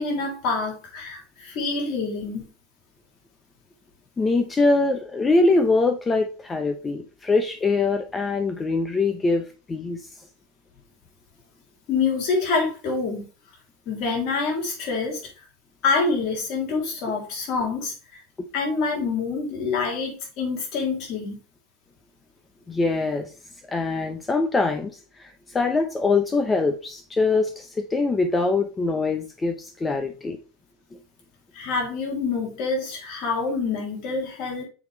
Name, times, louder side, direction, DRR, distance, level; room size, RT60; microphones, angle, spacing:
voice 1, 0.0-2.5 11.9-13.2 13.9-15.2 15.8-18.2 18.5-21.4 31.5-34.6, left 4 dB, 60° left, 3.1 m, -26 dB
voice 2, 4.2-10.0 17.1-17.2 18.4-18.5 22.7-23.3 23.7-30.4 30.9-31.0, left 3 dB, 20° left, 0.9 m, -23 dB
7.1 x 4.7 x 3.3 m
hypercardioid pair, 95°, 0 cm